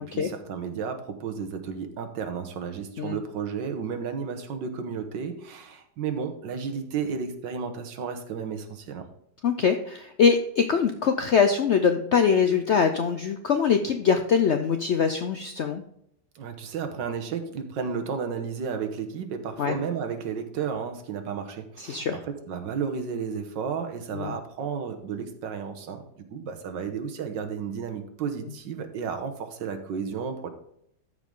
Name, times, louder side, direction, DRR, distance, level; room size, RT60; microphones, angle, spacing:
voice 1, 0.0-9.1 16.4-30.5, right 6 dB, 85° right, 6 dB, 1.8 m, -33 dB
voice 2, 9.4-15.8 19.6-19.8 21.8-22.2 24.1-24.4, left 6 dB, 75° left, 7 dB, 0.6 m, -23 dB
13.0 x 5.0 x 3.7 m, 0.75 s
omnidirectional pair, 1.9 m